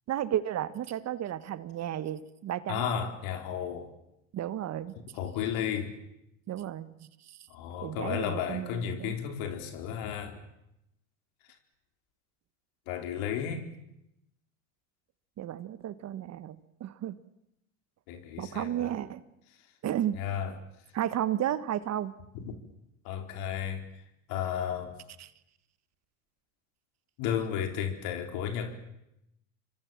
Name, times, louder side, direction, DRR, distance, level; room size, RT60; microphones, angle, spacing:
voice 1, 0.1-2.9 4.3-5.0 6.5-7.4 7.8-9.1 15.4-17.2 18.4-19.2 19.8-20.2 20.9-22.1 25.2-25.3, right 11 dB, 45° right, 1.5 m, -33 dB
voice 2, 2.7-3.9 5.1-6.0 7.5-10.4 12.9-13.7 18.1-18.9 20.1-20.6 22.3-22.4 23.0-23.9 24.3-25.0 27.2-28.8, left 8 dB, 60° left, 4.4 m, -33 dB
28.0 x 25.0 x 7.4 m
hypercardioid pair, 80°, 38 cm